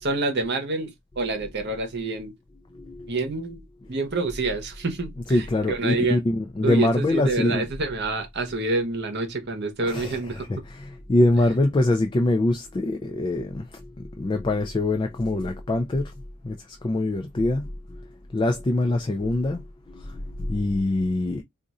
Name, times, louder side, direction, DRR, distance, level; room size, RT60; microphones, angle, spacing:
voice 1, 0.0-2.3 3.1-3.6 3.9-6.2 6.6-10.5, right 3 dB, 50° right, 0.9 m, -27 dB
voice 2, 2.7-3.2 5.3-7.7 9.8-16.1 16.4-18.1 18.3-21.4, left 1 dB, 20° left, 0.3 m, -24 dB
2.5 x 2.4 x 4.1 m
head